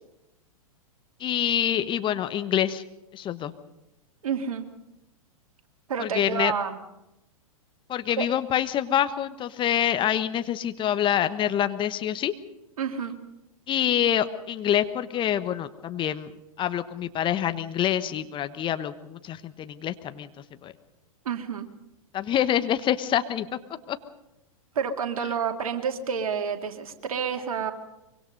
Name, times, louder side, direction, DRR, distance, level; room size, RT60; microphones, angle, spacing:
voice 1, 1.2-2.8 3.1-3.5 6.0-6.5 7.9-12.3 13.7-16.3 16.6-20.3 20.6-20.7 22.1-23.5 23.9-24.0, left 10 dB, 25° left, 11 dB, 1.2 m, -26 dB
voice 2, 4.2-4.6 5.9-6.7 8.2-8.3 12.8-13.2 21.2-21.7 24.7-27.7, right 7 dB, 70° right, 5 dB, 2.6 m, -29 dB
24.0 x 24.0 x 5.4 m, 0.93 s
hypercardioid pair, 105°, 19 cm